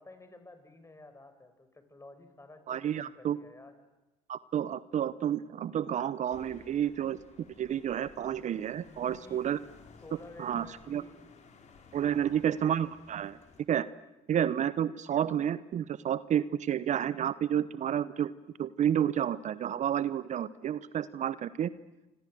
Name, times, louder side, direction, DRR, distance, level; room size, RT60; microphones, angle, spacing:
voice 1, 0.0-3.7 8.8-9.5 10.0-11.4 12.0-12.4, left 2 dB, 20° left, 9 dB, 5.7 m, -53 dB
voice 2, 2.7-3.4 4.3-7.2 7.6-9.6 10.4-11.0 11.9-13.4 13.7-13.9 14.3-18.3 18.6-21.7, right 9 dB, 50° right, 16 dB, 0.9 m, -30 dB
sound 1, 6.3-13.6, left 5 dB, 50° left, 4.8 m, -57 dB
28.0 x 26.0 x 7.9 m, 1.0 s
hypercardioid pair, 65°, 15 cm